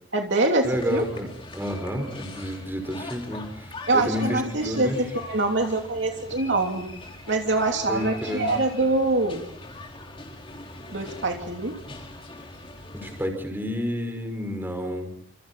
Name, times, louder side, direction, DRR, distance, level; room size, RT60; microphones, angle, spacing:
voice 1, 0.1-1.1 3.9-6.9 7.3-9.4 10.9-11.7, right 2 dB, 65° right, 2 dB, 3.1 m, -24 dB
sound 1, 0.6-13.3, left 2 dB, 30° left, 4.5 m, -41 dB
voice 2, 0.6-3.7 3.9-5.0 7.9-8.5 12.9-15.1, equal, 10° right, 4 dB, 5.6 m, -30 dB
29.0 x 27.5 x 4.3 m, 0.67 s
head